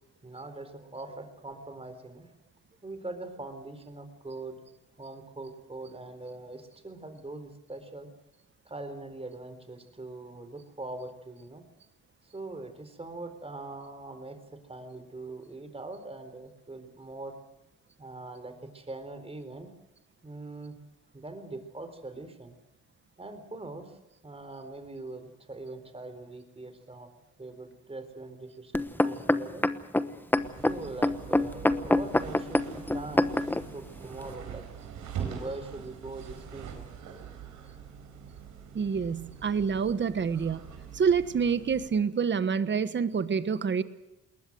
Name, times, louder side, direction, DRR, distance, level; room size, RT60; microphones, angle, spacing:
voice 1, 0.2-2.3 2.8-4.6 5.0-8.1 8.6-11.6 12.3-17.3 18.0-19.7 20.2-20.8 21.1-22.6 23.2-24.0 24.2-27.1 27.4-29.7 30.6-34.7 35.2-36.9, right 2 dB, 20° right, 9 dB, 4.0 m, -42 dB
sound 1, 28.7-33.6 34.3-34.4, left 1 dB, 5° left, 1.0 m, -25 dB
sound 2, 30.3-42.0, right 7 dB, 80° right, 4.6 m, -43 dB
voice 2, 38.7-40.6 40.9-43.8, right 6 dB, 40° right, 13 dB, 1.3 m, -27 dB
20.5 x 19.5 x 7.9 m, 0.95 s
cardioid pair, 90°, 30 cm